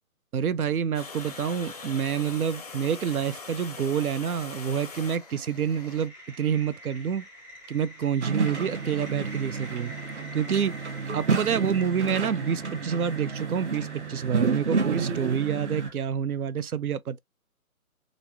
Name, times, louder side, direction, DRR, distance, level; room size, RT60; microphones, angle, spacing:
voice 1, 0.3-7.2 7.7-9.9 10.3-10.8 11.1-17.2, right 8 dB, 80° right, 0.5 m, -28 dB
Water, 0.9-6.1, left 4 dB, 30° left, 0.5 m, -42 dB
sound 1, 4.4-15.9, equal, 15° right, 0.8 m, -46 dB
sound 2, 8.2-15.9, right 4 dB, 55° right, 0.9 m, -30 dB
3.1 x 2.5 x 2.6 m
figure-of-eight pair, 140°, 43 cm